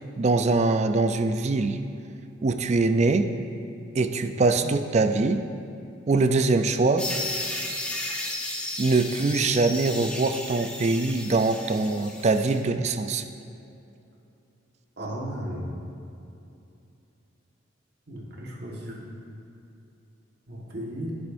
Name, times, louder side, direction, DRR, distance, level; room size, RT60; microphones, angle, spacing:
voice 1, 0.2-1.8 2.4-3.3 3.9-5.4 6.1-7.1 8.8-13.2, right 3 dB, 35° right, 8 dB, 0.4 m, -23 dB
sound 1, 7.0-12.6, left 1 dB, 5° left, 0.8 m, -34 dB
voice 2, 15.0-15.7 18.1-19.0 20.5-21.1, equal, 55° right, -2 dB, 1.5 m, -35 dB
10.5 x 10.5 x 2.6 m, 2.7 s
head